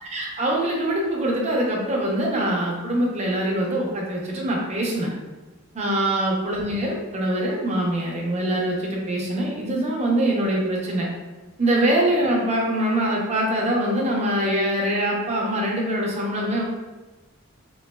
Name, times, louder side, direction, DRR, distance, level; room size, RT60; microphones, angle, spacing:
voice 1, 0.0-5.1 5.7-11.1 11.6-16.6, right 1 dB, 30° right, -2 dB, 0.6 m, -23 dB
3.3 x 3.1 x 2.2 m, 1.1 s
head